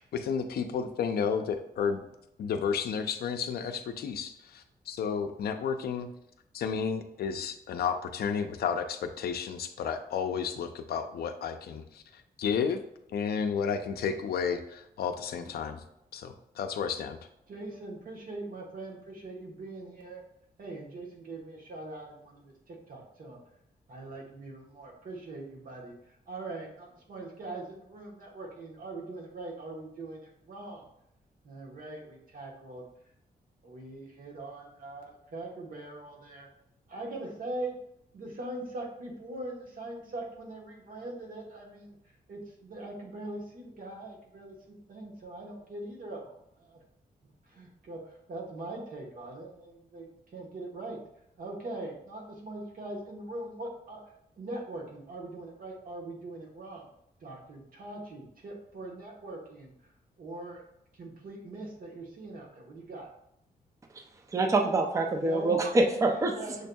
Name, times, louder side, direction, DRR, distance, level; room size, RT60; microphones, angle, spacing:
voice 1, 0.0-2.0 2.4-6.1 6.5-12.8 13.1-15.8 16.1-17.2, left 6 dB, 80° left, 7 dB, 0.4 m, -32 dB
voice 2, 17.5-20.2 20.6-23.4 23.9-25.9 26.3-30.9 31.4-32.9 33.6-36.5 36.9-37.7 38.1-42.0 42.3-46.8 47.5-51.0 51.4-54.0 54.4-56.9 57.2-59.7 60.2-60.6 60.9-63.1 65.1-65.8 66.3-66.7, right 2 dB, 60° right, 0 dB, 1.1 m, -41 dB
voice 3, 64.3-66.3, right 2 dB, 20° right, 4 dB, 0.4 m, -25 dB
6.3 x 2.6 x 2.2 m, 0.79 s
wide cardioid pair, 140°, 16 cm